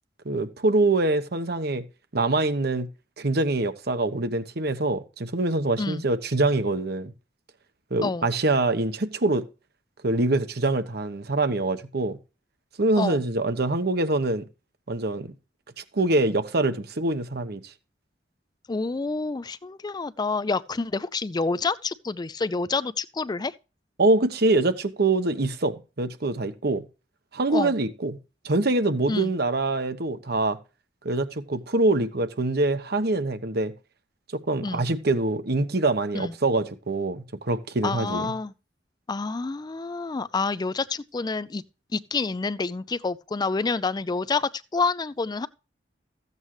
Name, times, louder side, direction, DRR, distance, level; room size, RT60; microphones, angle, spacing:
voice 1, 0.2-1.8 2.1-2.9 3.2-7.1 7.9-9.4 10.0-12.2 12.8-14.4 14.9-15.3 15.8-17.6 24.0-26.8 27.3-28.2 28.4-30.6 31.0-33.7 34.3-38.3, right 2 dB, 60° right, 1.1 m, -24 dB
voice 2, 18.7-23.5 27.5-27.7 29.1-29.3 34.6-34.8 36.1-36.3 37.8-38.5 39.1-41.6 41.9-45.5, left 4 dB, 20° left, 0.4 m, -28 dB
14.5 x 8.1 x 3.1 m
head